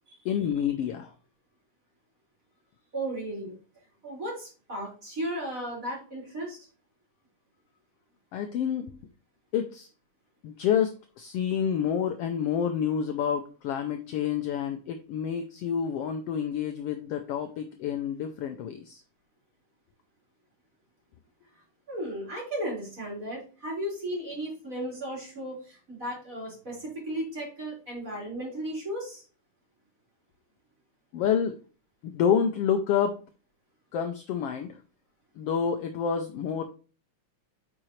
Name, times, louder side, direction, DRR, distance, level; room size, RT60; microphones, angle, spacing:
voice 1, 0.2-1.1 8.3-8.9 9.5-9.9 10.4-19.0 31.1-31.6 32.0-33.2 33.9-34.8 35.4-36.6, left 8 dB, 80° left, 6 dB, 1.3 m, -28 dB
voice 2, 2.9-3.6 4.0-6.6 21.9-29.2, right 1 dB, 25° right, -4 dB, 4.5 m, -35 dB
8.9 x 6.1 x 3.2 m, 0.36 s
omnidirectional pair, 3.5 m